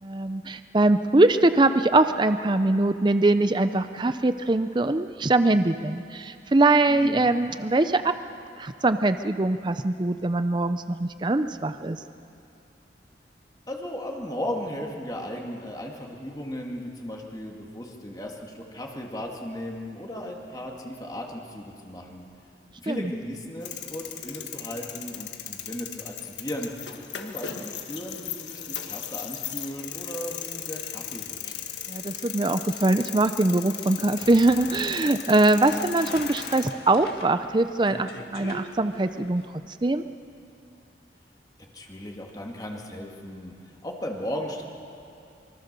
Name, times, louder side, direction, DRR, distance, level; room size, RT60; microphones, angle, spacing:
voice 1, 0.0-8.1 8.6-12.0 22.9-23.1 31.9-39.4 39.8-40.0, right 2 dB, 25° right, 10 dB, 0.5 m, -22 dB
voice 2, 6.9-7.3 13.7-22.3 22.8-26.7 27.1-31.5 41.7-43.5 43.8-44.6, equal, 20° left, 0 dB, 2.2 m, -36 dB
sound 1, 23.6-36.7, left 10 dB, 85° left, 1.6 m, -37 dB
sound 2, 33.9-39.4, left 2 dB, 60° left, 2.4 m, -42 dB
25.5 x 23.5 x 6.8 m, 2.6 s
head